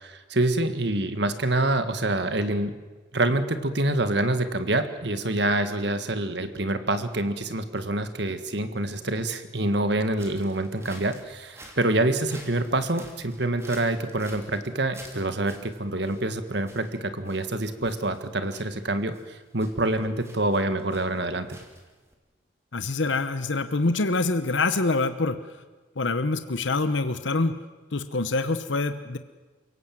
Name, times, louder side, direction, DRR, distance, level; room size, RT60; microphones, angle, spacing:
voice 1, 0.0-2.7 3.1-21.6, right 2 dB, 65° right, 9 dB, 1.8 m, -26 dB
sound 1, 10.2-22.1, right 1 dB, 15° right, 3.0 m, -50 dB
voice 2, 22.7-25.4 26.0-27.6 27.9-29.2, left 3 dB, 75° left, 10 dB, 1.0 m, -25 dB
29.0 x 17.5 x 7.8 m, 1.3 s
head